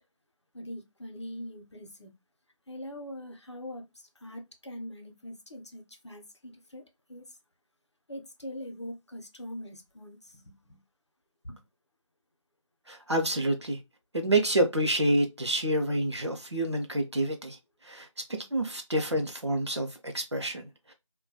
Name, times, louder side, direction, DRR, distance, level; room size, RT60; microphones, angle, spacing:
voice 1, 0.5-2.1 2.7-3.9 4.2-6.8 7.1-7.3 8.1-10.8 11.4-11.6, left 1 dB, 60° left, 0.6 m, -42 dB
voice 2, 12.9-13.8 14.1-17.6 17.8-20.9, right 1 dB, 60° right, 0.5 m, -28 dB
2.2 x 2.1 x 2.6 m
figure-of-eight pair, 180°, 17 cm